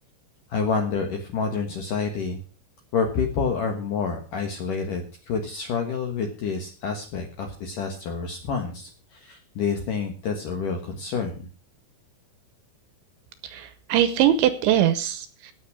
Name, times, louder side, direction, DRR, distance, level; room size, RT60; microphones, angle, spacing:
voice 1, 0.5-2.4 2.9-11.5, left 5 dB, 65° left, 4 dB, 2.2 m, -28 dB
voice 2, 13.5-15.5, right 11 dB, 80° right, 12 dB, 3.0 m, -22 dB
17.5 x 7.1 x 6.1 m, 0.37 s
omnidirectional pair, 5.8 m